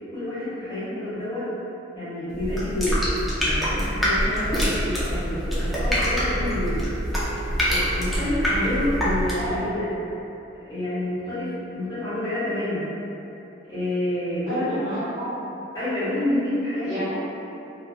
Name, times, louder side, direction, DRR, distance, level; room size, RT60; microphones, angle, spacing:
voice 1, 0.1-1.4 1.9-3.0 3.4-6.8 7.6-9.9 10.6-12.9 13.7-14.6 15.7-17.2, left 1 dB, 20° left, -16 dB, 1.4 m, -28 dB
sound 1, 2.3-9.6, equal, ahead, 0.5 m, -25 dB
voice 2, 9.3-9.8 14.5-15.5 16.8-17.2, equal, 30° right, -15 dB, 1.3 m, -31 dB
3.1 x 2.5 x 2.4 m, 2.9 s
head